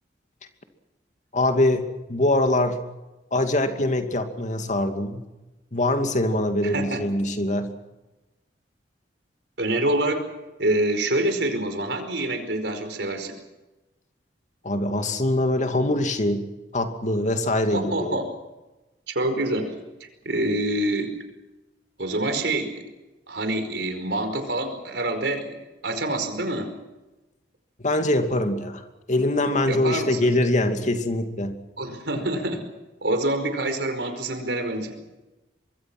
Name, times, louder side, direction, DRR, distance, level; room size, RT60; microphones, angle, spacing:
voice 1, 1.3-2.8 3.3-5.2 5.7-7.7 14.6-16.5 16.7-18.2 27.8-31.6, left 1 dB, 45° left, 2.5 m, -23 dB
voice 2, 6.6-7.0 9.6-10.3 10.6-13.3 17.7-18.3 19.1-19.7 20.0-21.1 22.0-22.8 23.3-25.6 25.8-26.7 29.6-30.3 31.8-32.6 33.0-35.0, right 1 dB, 70° right, 4.9 m, -26 dB
25.0 x 22.5 x 6.2 m
head